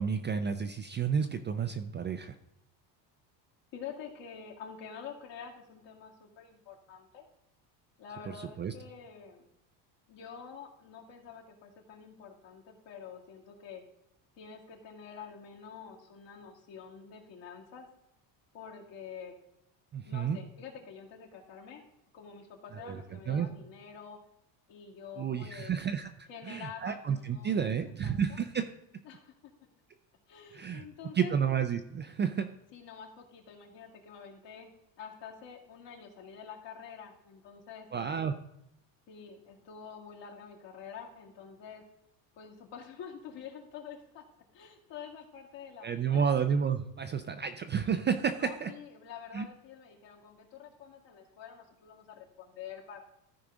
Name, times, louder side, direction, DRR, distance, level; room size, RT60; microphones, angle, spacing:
voice 1, 0.0-2.4 8.6-8.7 19.9-20.4 22.7-23.0 23.3-23.5 25.2-28.6 30.5-30.8 31.1-32.5 37.9-38.3 45.8-48.7 49.3-49.4, right 7 dB, 25° right, 7 dB, 0.3 m, -31 dB
voice 2, 3.7-7.2 8.0-9.5 10.1-13.8 14.4-17.9 18.5-19.4 20.0-21.8 22.1-24.2 24.7-25.8 26.3-28.4 29.0-29.5 30.3-31.3 32.7-34.7 35.0-37.9 39.1-41.8 42.4-44.2 44.5-46.2 48.3-53.0, left 7 dB, 60° left, 0 dB, 2.3 m, -47 dB
14.0 x 4.8 x 3.8 m, 0.82 s
cardioid pair, 120°, 49 cm